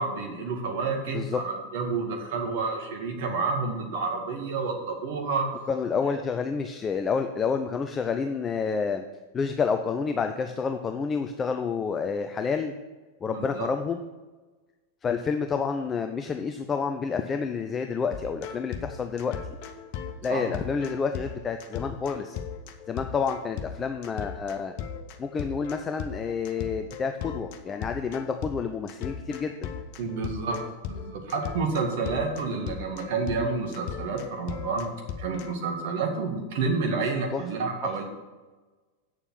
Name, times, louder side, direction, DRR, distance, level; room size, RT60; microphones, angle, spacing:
voice 1, 0.0-5.5 13.3-13.7 20.3-20.4 30.0-30.6 30.9-34.9 35.2-38.0, right 4 dB, 50° right, 2 dB, 2.0 m, -29 dB
voice 2, 5.7-9.0 9.3-12.7 13.2-14.1 15.0-19.4 20.2-22.4 22.9-24.7 25.2-29.7 36.9-37.0 37.3-37.4 37.8-37.9, left 5 dB, 20° left, 7 dB, 0.6 m, -29 dB
sound 1, 18.1-35.5, left 7 dB, 45° left, 1.0 m, -37 dB
8.8 x 7.1 x 6.0 m, 1.3 s
figure-of-eight pair, 90°, 0 cm